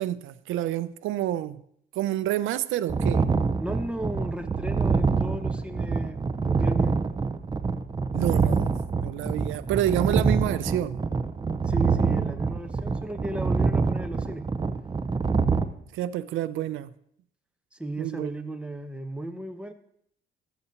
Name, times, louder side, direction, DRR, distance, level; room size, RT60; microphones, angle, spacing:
voice 1, 0.0-1.6 1.9-3.3 8.1-11.0 15.9-16.9 18.0-18.3, right 13 dB, 80° right, 0.4 m, -28 dB
sound 1, 2.9-15.6, right 4 dB, 20° right, 0.6 m, -26 dB
voice 2, 3.6-7.0 11.7-14.5 17.8-19.7, right 1 dB, 5° right, 0.9 m, -35 dB
13.0 x 7.9 x 2.8 m
cardioid pair, 90°, 20 cm